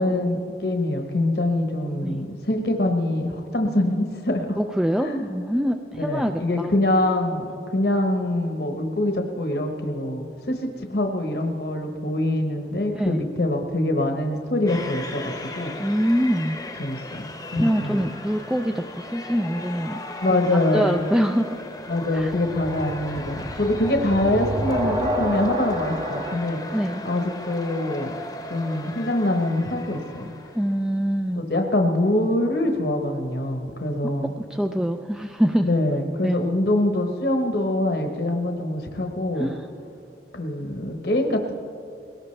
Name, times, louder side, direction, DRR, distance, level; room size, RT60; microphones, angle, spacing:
voice 1, 0.0-4.6 5.0-5.2 5.9-15.9 16.8-18.0 20.2-21.0 21.9-26.6 27.0-28.2 28.5-30.3 31.3-34.3 35.6-39.5 40.3-41.5, left 1 dB, 60° left, 3 dB, 1.1 m, -24 dB
voice 2, 4.6-6.7 12.9-13.2 15.8-16.6 17.5-20.0 20.7-21.5 22.1-22.3 23.2-23.3 26.7-27.0 30.5-31.4 34.0-35.7 36.2-36.5 39.4-39.6, equal, 5° right, 5 dB, 0.3 m, -24 dB
sound 1, 14.7-30.9, left 2 dB, 20° left, 0.8 m, -37 dB
sound 2, 17.6-18.5 22.1-26.4, equal, 25° right, 0.7 m, -29 dB
21.0 x 18.0 x 3.3 m, 2.5 s
head